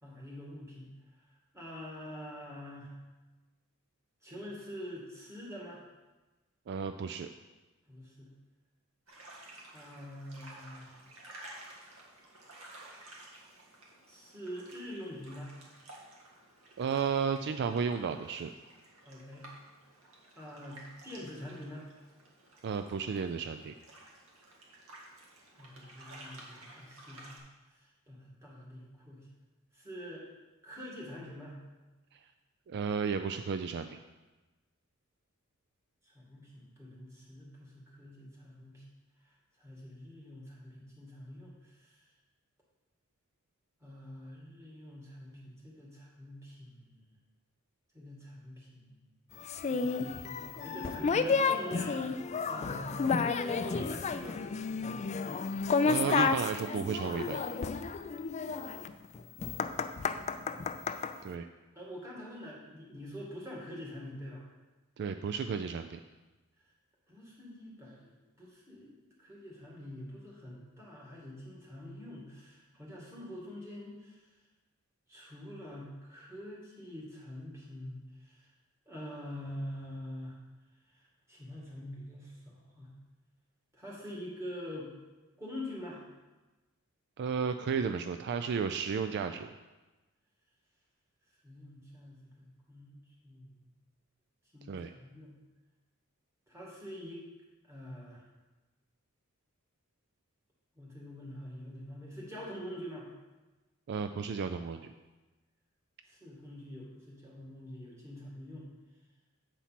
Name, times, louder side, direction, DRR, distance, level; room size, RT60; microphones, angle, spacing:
voice 1, 0.0-0.9 1.5-3.0 4.2-5.8 7.9-8.3 9.7-10.9 14.1-15.5 19.1-19.5 20.4-21.9 25.5-27.4 27.7-29.3 29.7-30.2 30.6-31.6 36.0-38.8 39.2-42.0 43.8-47.2 47.9-49.0 49.7-52.1 52.5-54.4 61.7-64.4 67.1-68.1 68.4-74.2 75.1-78.5 78.9-80.4 80.9-82.9 83.7-84.9 85.4-86.0 91.4-93.6 94.5-95.4 96.5-97.2 97.7-98.2 100.8-103.1 106.0-108.7, equal, 15° right, -5 dB, 2.2 m, -45 dB
voice 2, 6.7-7.3 16.8-18.5 22.6-23.7 32.7-34.0 55.8-57.5 61.2-61.5 65.0-66.0 87.2-89.5 94.7-94.9 103.9-104.9, right 6 dB, 55° right, 8 dB, 0.3 m, -33 dB
sound 1, 9.1-27.4, right 1 dB, 80° right, 1.7 m, -53 dB
sound 2, 49.5-61.1, left 5 dB, 35° left, 0.3 m, -31 dB
8.2 x 4.3 x 5.8 m, 1.2 s
head